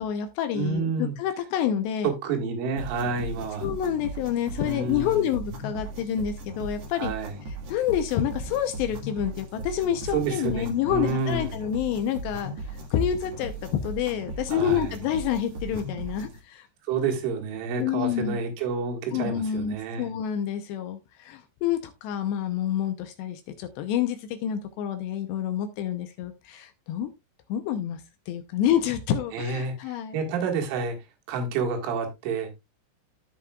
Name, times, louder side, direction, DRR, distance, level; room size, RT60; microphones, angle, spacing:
voice 1, 0.0-2.1 3.6-7.1 7.7-12.5 12.9-16.7 17.8-18.4 19.1-27.1 27.5-28.0 28.3-30.2, left 9 dB, 75° left, 2.7 m, -28 dB
voice 2, 0.5-1.2 2.0-3.7 4.5-5.3 6.9-7.4 10.1-11.6 14.5-14.9 16.8-20.1 29.3-31.0 31.3-32.5, right 4 dB, 85° right, 4.2 m, -29 dB
sound 1, 2.8-16.4, right 2 dB, 60° right, 1.6 m, -38 dB
16.0 x 5.4 x 2.3 m
omnidirectional pair, 5.4 m